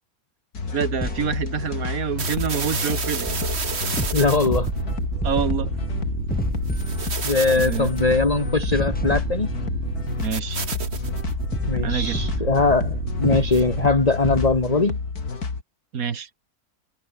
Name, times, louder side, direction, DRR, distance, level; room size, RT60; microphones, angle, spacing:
sound 1, 0.5-15.6, left 4 dB, 80° left, 3.2 m, -30 dB
voice 1, 0.7-3.4 5.2-5.7 7.6-7.9 10.2-10.6 11.8-12.2 15.9-16.3, right 7 dB, 70° right, 2.0 m, -27 dB
sound 2, 1.0-1.8 2.3-2.4 2.7-10.3 11.5-12.9 13.2-14.7, equal, 5° left, 3.6 m, -32 dB
sound 3, 2.2-14.0, right 5 dB, 45° right, 1.8 m, -30 dB
voice 2, 4.1-4.7 7.2-9.5 11.7-15.0, left 3 dB, 25° left, 1.9 m, -21 dB
omnidirectional pair, 1.6 m